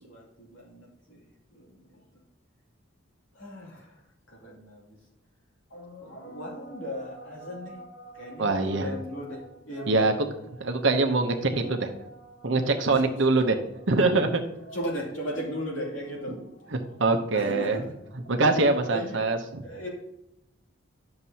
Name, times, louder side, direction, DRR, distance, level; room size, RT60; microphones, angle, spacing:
voice 1, 0.1-1.2 1.5-2.2 3.3-4.0 4.3-5.0 5.7-10.6 11.3-13.5 13.8-14.3 14.7-17.0 17.3-17.9 18.2-19.2 19.6-19.9, equal, 65° left, -4 dB, 2.9 m, -38 dB
voice 2, 8.4-8.9 9.9-10.1 10.6-11.9 12.4-13.6 13.9-14.4 16.3-16.4 16.7-17.8 18.3-19.6, right 3 dB, 60° right, 5 dB, 0.9 m, -24 dB
11.0 x 6.7 x 2.9 m, 0.81 s
head